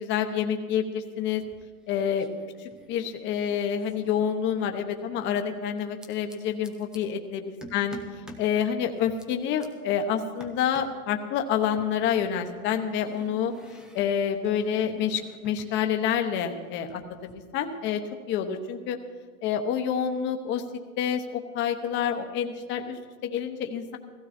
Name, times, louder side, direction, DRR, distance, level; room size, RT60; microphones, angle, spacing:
voice 1, 0.0-1.4 1.9-2.3 2.6-8.0 8.4-13.5 13.9-18.0 18.3-19.0 19.4-20.6 21.0-24.0, left 8 dB, 25° left, 5 dB, 1.0 m, -28 dB
sound 1, 1.3-1.9 2.2-4.8 5.8-7.0 7.6-8.5 8.9-9.7 10.4-11.0 11.8-15.8 16.0-17.3, equal, ahead, 0.4 m, -49 dB
15.5 x 15.5 x 4.3 m, 1.5 s
hypercardioid pair, 140°, 44 cm